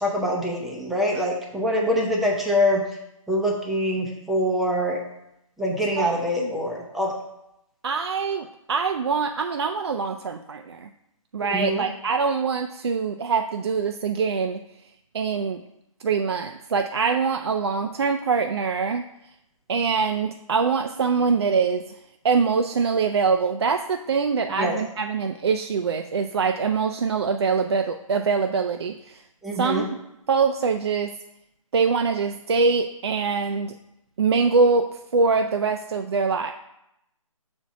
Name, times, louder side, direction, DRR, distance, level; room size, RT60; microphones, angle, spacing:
voice 1, 0.0-2.8 3.3-5.0 5.6-7.1 11.4-11.8 24.5-24.8 29.4-29.8, equal, ahead, -2 dB, 0.5 m, -24 dB
voice 2, 6.0-6.5 7.8-10.9 11.3-14.6 15.1-15.6 16.0-19.1 19.7-21.8 22.2-29.2 29.6-29.9 30.3-31.2 31.7-33.7 34.2-36.5, right 5 dB, 50° right, 6 dB, 0.4 m, -24 dB
5.8 x 4.3 x 6.0 m, 0.84 s
figure-of-eight pair, 150°, 18 cm